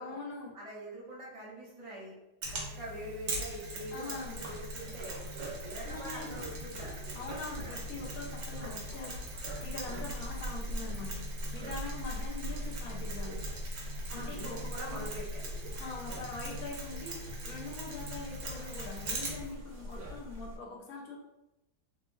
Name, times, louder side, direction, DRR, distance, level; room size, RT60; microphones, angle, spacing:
voice 1, 0.0-0.5 3.9-4.4 5.8-6.4 7.1-9.4 9.6-11.3 11.5-13.4 14.1-15.1 15.8-21.2, left 3 dB, 70° left, -1 dB, 1.1 m, -43 dB
voice 2, 0.5-2.1 2.5-5.2 5.6-6.9 7.5-7.8 8.6-8.8 9.8-10.1 14.1-15.4 15.8-15.9, right 1 dB, 30° right, -5 dB, 0.6 m, -44 dB
Mechanisms, 2.4-19.5, right 1 dB, 65° right, 1.2 m, -42 dB
sound 1, 4.2-20.6, equal, 90° right, 1.3 m, -42 dB
3.4 x 2.1 x 3.1 m, 0.92 s
omnidirectional pair, 1.7 m